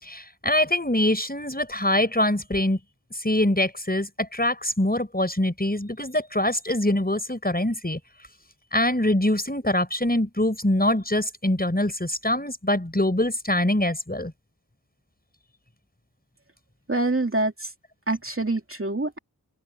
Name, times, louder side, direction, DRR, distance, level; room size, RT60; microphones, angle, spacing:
voice 1, 0.0-2.8 3.2-8.0 8.7-14.3, left 1 dB, 25° left, 6.1 m, -24 dB
voice 2, 16.9-17.5 18.1-19.2, right 2 dB, 35° right, 2.7 m, -25 dB
open air
wide cardioid pair, 50°, 37 cm